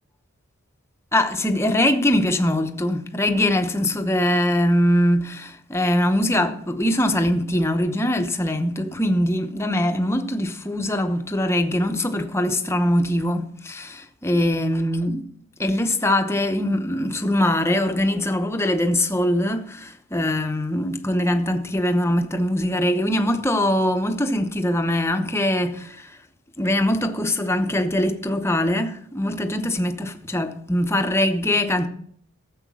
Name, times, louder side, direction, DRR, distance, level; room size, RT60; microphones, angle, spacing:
voice 1, 1.1-15.2 15.6-26.2 26.6-31.9, left 1 dB, 10° left, 0.8 m, -22 dB
14.0 x 7.6 x 6.2 m
head